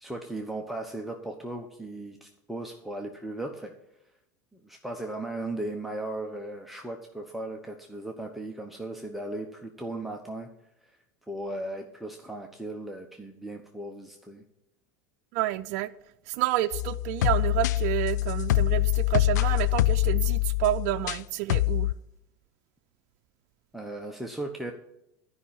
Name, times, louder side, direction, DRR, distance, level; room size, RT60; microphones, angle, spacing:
voice 1, 0.0-3.7 4.5-10.5 10.8-11.0 11.3-14.4 23.7-24.7, right 1 dB, ahead, 1 dB, 1.0 m, -37 dB
voice 2, 15.3-15.9 16.3-21.9, right 15 dB, 65° right, 9 dB, 0.5 m, -29 dB
sound 1, 16.7-21.2 21.5-21.9, left 16 dB, 85° left, 0.3 m, -25 dB
11.0 x 5.5 x 8.8 m, 0.85 s
supercardioid pair, 110°, 9 cm